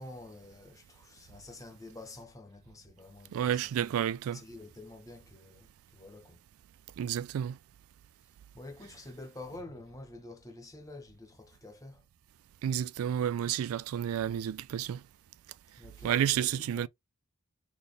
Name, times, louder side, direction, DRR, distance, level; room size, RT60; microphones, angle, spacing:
voice 1, 0.0-3.9 4.3-6.4 8.5-12.0 15.8-16.9, left 2 dB, 15° left, 1.0 m, -48 dB
voice 2, 3.3-4.4 7.0-7.6 12.6-15.0 16.0-16.9, right 9 dB, 75° right, 0.3 m, -30 dB
4.2 x 3.2 x 3.2 m
head